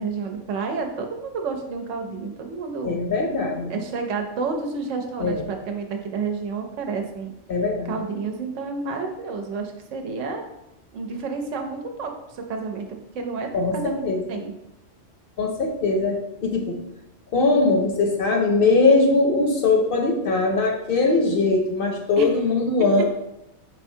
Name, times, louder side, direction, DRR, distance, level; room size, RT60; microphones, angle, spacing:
voice 1, 0.0-3.0 3.7-7.3 7.8-10.4 10.9-12.9 13.1-14.0 14.3-14.5 22.2-22.3, right 4 dB, 80° right, 4 dB, 1.0 m, -30 dB
voice 2, 2.8-3.7 5.2-5.4 7.5-7.9 13.5-14.2 15.4-16.8 17.3-23.0, left 3 dB, 60° left, 2 dB, 0.6 m, -21 dB
4.9 x 3.4 x 2.7 m, 0.88 s
omnidirectional pair, 1.3 m